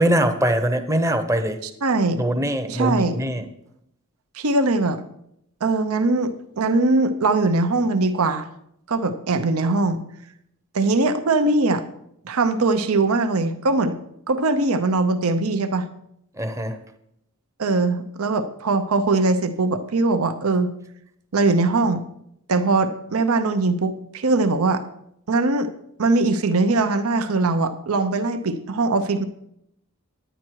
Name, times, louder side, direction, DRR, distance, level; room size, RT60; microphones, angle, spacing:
voice 1, 0.0-1.6 2.2-3.5 16.3-16.8, right 1 dB, 15° right, 7 dB, 0.8 m, -22 dB
voice 2, 1.8-2.2 2.7-3.2 4.4-5.0 5.6-8.5 8.9-10.0 10.7-11.8 12.2-14.0 14.3-15.9 17.6-20.7 21.3-22.0 22.5-24.8 25.3-25.7 26.0-29.2, right 3 dB, 70° right, 10 dB, 0.7 m, -21 dB
10.0 x 9.6 x 4.6 m, 0.76 s
head